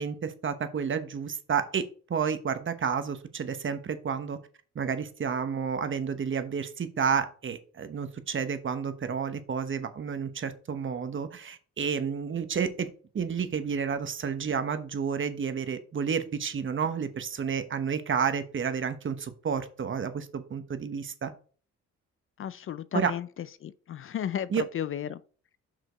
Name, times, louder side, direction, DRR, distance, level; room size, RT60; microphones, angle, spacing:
voice 1, 0.0-4.4 4.7-12.9 13.1-21.3 22.9-23.1 24.5-24.6, right 6 dB, 40° right, 1.1 m, -30 dB
voice 2, 22.4-23.3 23.6-25.2, left 10 dB, 45° left, 0.4 m, -34 dB
5.9 x 5.0 x 4.5 m
cardioid pair, 90°, 30 cm